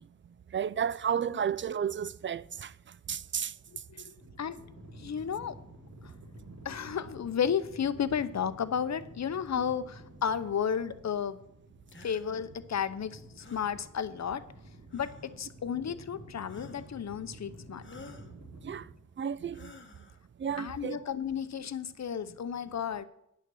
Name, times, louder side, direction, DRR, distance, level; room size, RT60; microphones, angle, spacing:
voice 1, 0.5-2.7 3.1-3.5 18.6-18.8 19.2-19.7 20.4-21.0, right 8 dB, 40° right, 0.4 m, -32 dB
voice 2, 3.9-4.6 5.0-5.6 6.6-11.4 12.0-14.4 14.9-17.8 20.6-23.1, left 7 dB, 60° left, 0.7 m, -33 dB
sound 1, 4.2-18.9, right 1 dB, 60° right, 4.3 m, -51 dB
sound 2, 11.9-12.3 13.4-13.7 14.9-15.4 16.5-17.0 17.8-18.3 19.5-20.2, left 4 dB, 40° left, 1.1 m, -51 dB
10.5 x 6.5 x 6.3 m
cardioid pair, 70°, 32 cm